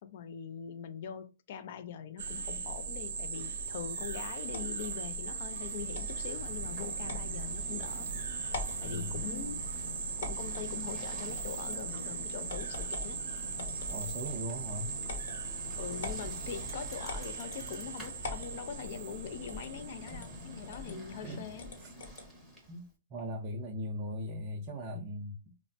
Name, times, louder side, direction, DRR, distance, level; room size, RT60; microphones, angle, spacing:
voice 1, 0.0-8.1 8.3-8.5 8.8-9.7 10.2-13.2 15.8-21.7, left 8 dB, 50° left, 0.4 m, -42 dB
sound 1, 2.2-21.3, right 5 dB, 75° right, 0.5 m, -39 dB
sound 2, 4.5-4.9 5.9-6.2 7.1-7.3 7.8-7.9 8.4-8.8 10.2-10.7 11.4-11.8 12.5-13.1 13.6-14.5 15.0-15.4 16.0-16.3 17.1-17.6 18.2-18.5 19.5-19.7 20.1-20.3 20.7-20.9 21.6-22.3, left 3 dB, 65° left, 0.9 m, -42 dB
Bicycle, 5.3-22.9, left 1 dB, ahead, 0.8 m, -48 dB
voice 2, 8.8-9.2 13.9-15.0 20.1-20.2 21.2-21.4 21.8-21.9 22.7-22.8 23.1-25.3, left 1 dB, 30° right, 0.5 m, -38 dB
3.1 x 2.0 x 2.6 m
hypercardioid pair, 150°, 0 cm